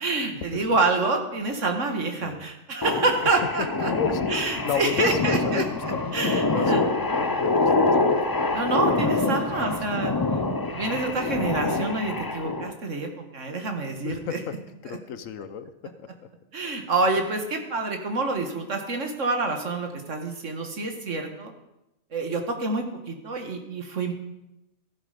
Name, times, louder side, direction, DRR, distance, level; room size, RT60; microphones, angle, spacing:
voice 1, 0.0-3.9 4.3-5.6 6.1-6.8 8.5-10.4 10.7-14.4 16.5-21.5 22.1-24.1, right 3 dB, 65° right, 5 dB, 2.0 m, -27 dB
sound 1, 2.8-12.7, left 3 dB, 20° left, 0.6 m, -25 dB
voice 2, 3.9-8.1 8.7-9.5 14.0-14.5 14.8-16.3, left 7 dB, 80° left, 12 dB, 1.2 m, -32 dB
14.5 x 11.0 x 5.1 m, 0.91 s
omnidirectional pair, 1.4 m